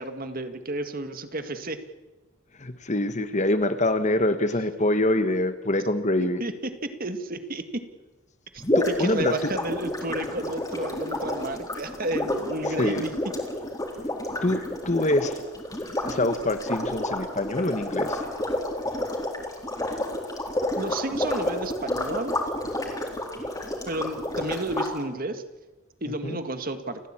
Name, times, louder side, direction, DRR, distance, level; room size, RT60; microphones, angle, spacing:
voice 1, 0.0-1.8 6.2-7.8 8.5-13.1 20.8-22.4 23.9-25.4 26.0-27.0, right 2 dB, 40° right, 8 dB, 1.9 m, -32 dB
voice 2, 2.6-6.4 8.7-9.5 12.8-13.1 14.4-15.3 16.1-18.2 26.2-26.4, left 1 dB, 35° left, 10 dB, 1.3 m, -25 dB
sound 1, 8.6-24.9, left 1 dB, 15° left, 4.0 m, -30 dB
29.5 x 15.5 x 8.9 m, 1.2 s
head